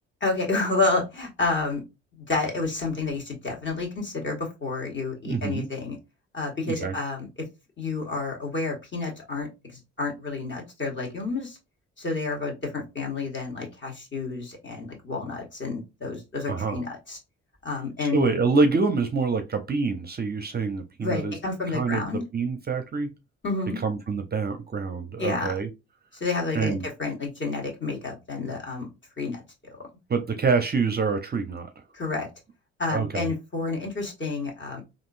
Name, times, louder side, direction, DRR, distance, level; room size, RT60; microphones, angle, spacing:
voice 1, 0.2-1.8 2.1-6.0 6.3-7.3 7.8-11.6 12.0-17.2 17.6-18.3 21.0-22.2 23.4-23.8 25.2-25.5 26.1-28.9 29.2-29.4 29.7-29.8 31.9-32.3 32.8-34.8, left 3 dB, 35° left, 1.6 m, -30 dB
voice 2, 5.2-5.7 6.7-6.9 16.5-16.8 18.0-21.3 21.7-23.1 23.8-25.7 26.5-26.8 30.1-31.7 32.9-33.3, right 4 dB, 30° right, 0.6 m, -26 dB
3.5 x 2.6 x 2.5 m
supercardioid pair, 60°, 32 cm